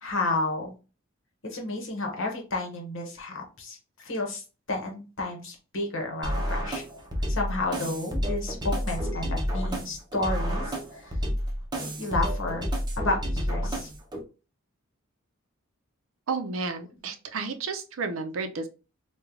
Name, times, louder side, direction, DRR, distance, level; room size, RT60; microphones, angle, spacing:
voice 1, 0.0-0.7 1.4-6.8 7.3-11.1 12.0-12.6 13.0-13.9, left 2 dB, 65° left, 2 dB, 1.0 m, -31 dB
sound 1, 6.2-14.2, equal, 20° right, 0.7 m, -30 dB
voice 2, 16.3-18.7, right 4 dB, 65° right, 7 dB, 0.5 m, -32 dB
3.1 x 2.3 x 3.6 m, 0.33 s
head